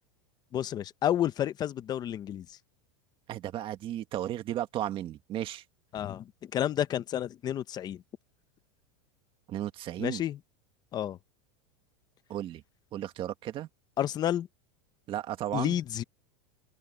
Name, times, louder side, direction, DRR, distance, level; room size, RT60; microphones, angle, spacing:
voice 1, 0.5-2.4 5.9-6.2 6.5-8.0 10.0-10.4 10.9-11.2 14.0-14.5 15.5-16.0, left 11 dB, 25° left, 0.8 m, -30 dB
voice 2, 3.3-5.6 9.5-10.2 12.3-12.6 12.9-13.7 15.1-15.8, right 12 dB, 30° right, 1.7 m, -34 dB
open air
supercardioid pair, 160°, 18 cm